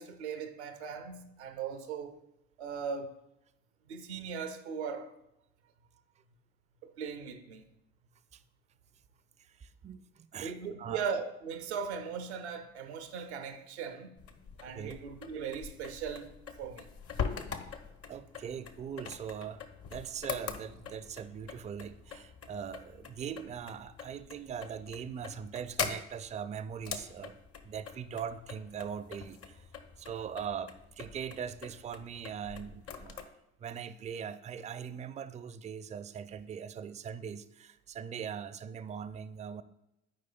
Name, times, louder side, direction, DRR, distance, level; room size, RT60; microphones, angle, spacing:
voice 1, 0.0-2.2 2.6-3.1 3.9-5.1 6.8-7.7 10.4-14.2 14.6-16.9, right 6 dB, 80° right, 0.6 m, -39 dB
voice 2, 9.4-11.0 14.7-15.0 18.1-27.4 27.6-29.7 30.0-33.3 33.6-39.6, right 7 dB, 20° right, 0.4 m, -41 dB
sound 1, 14.2-33.2, left 6 dB, 45° left, 0.8 m, -43 dB
11.5 x 4.8 x 2.3 m
figure-of-eight pair, 50°, 33 cm